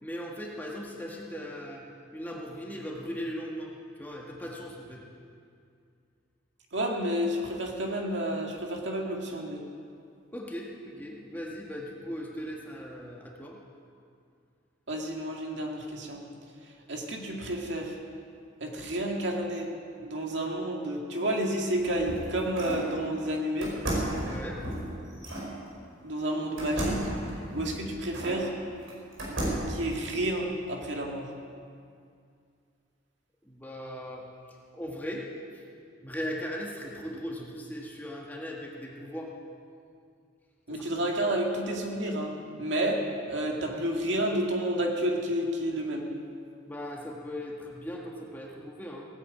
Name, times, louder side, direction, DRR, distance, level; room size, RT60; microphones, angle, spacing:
voice 1, 0.0-1.8 2.1-3.7 4.0-5.0 10.3-13.6 24.3-24.6 33.4-34.2 34.7-35.3 36.0-39.3 40.7-41.0 46.7-49.1, equal, 10° left, -2 dB, 1.7 m, -38 dB
voice 2, 6.7-9.6 14.9-16.2 16.9-17.9 18.6-19.7 20.0-23.8 26.0-27.1 27.5-28.5 29.7-31.3 40.7-42.3 42.6-46.1, right 1 dB, 65° right, 0 dB, 2.1 m, -30 dB
sound 1, 21.7-22.9 23.6-25.5 26.6-28.4 28.9-29.8, right 1 dB, 80° right, 4.8 m, -33 dB
17.0 x 9.1 x 8.5 m, 2.3 s
head